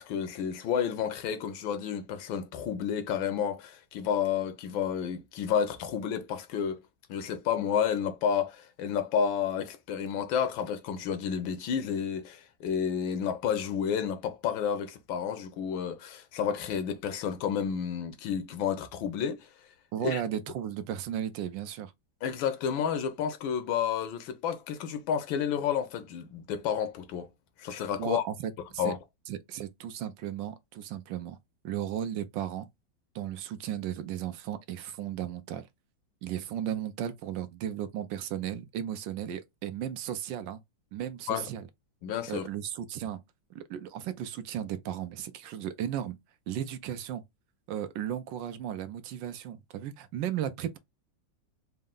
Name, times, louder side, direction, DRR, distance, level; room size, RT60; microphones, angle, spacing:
voice 1, 0.0-6.8 7.1-19.5 20.0-20.2 22.2-27.3 27.6-28.2 28.8-29.0 41.3-41.5 42.0-42.5, left 8 dB, 85° left, 1.5 m, -31 dB
voice 2, 19.9-21.9 28.0-28.9 29.3-31.4 31.6-32.7 33.1-35.7 36.2-40.6 40.9-41.7 42.3-43.2 43.5-46.2 46.5-47.2 47.7-50.8, right 10 dB, 75° right, 1.2 m, -35 dB
4.4 x 2.1 x 3.7 m
omnidirectional pair, 2.1 m